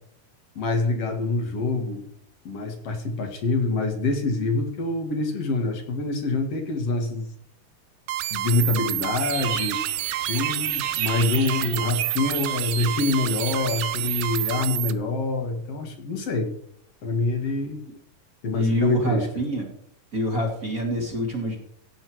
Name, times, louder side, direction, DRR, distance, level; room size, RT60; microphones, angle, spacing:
voice 1, 0.6-2.1 2.4-7.2 8.3-9.8 10.3-16.5 17.0-17.8 18.4-19.3, left 3 dB, 50° left, 4 dB, 2.7 m, -26 dB
sound 1, 8.1-14.9, right 14 dB, 85° right, 1.4 m, -29 dB
sound 2, 9.2-14.6, right 9 dB, 65° right, 1.4 m, -35 dB
voice 2, 18.5-19.7 20.1-21.6, equal, 25° right, 0 dB, 2.8 m, -25 dB
16.5 x 8.0 x 4.7 m, 0.68 s
omnidirectional pair, 3.7 m